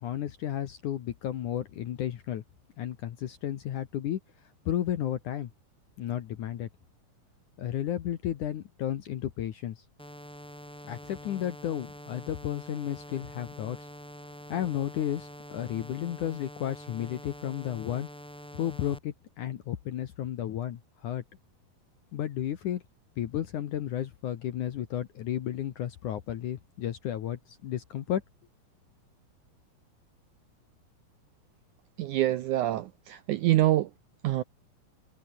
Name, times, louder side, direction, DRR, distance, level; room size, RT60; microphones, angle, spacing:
voice 1, 0.0-2.4 2.8-4.2 4.7-5.5 6.0-6.7 7.6-9.8 10.9-13.9 14.5-18.1 18.5-21.2 22.1-22.8 23.2-28.2, left 11 dB, 65° left, 2.4 m, -33 dB
sound 1, 10.0-19.0, equal, ahead, 4.4 m, -46 dB
voice 2, 32.0-33.9 34.2-34.4, right 14 dB, 85° right, 1.7 m, -25 dB
omnidirectional pair, 4.6 m